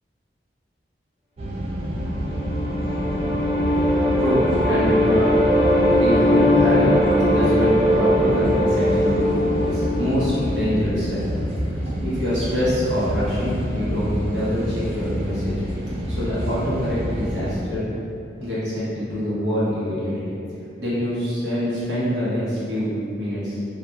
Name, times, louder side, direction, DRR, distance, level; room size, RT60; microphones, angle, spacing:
sound 1, 1.4-17.5, equal, 35° right, 0.3 m, -28 dB
sound 2, 2.0-11.1, left 1 dB, 20° left, 0.7 m, -20 dB
voice 1, 3.9-5.4 6.0-11.2 12.0-15.5 16.1-17.9 18.4-20.4 20.8-23.6, equal, 85° right, -10 dB, 1.0 m, -25 dB
2.4 x 2.2 x 2.9 m, 2.6 s
head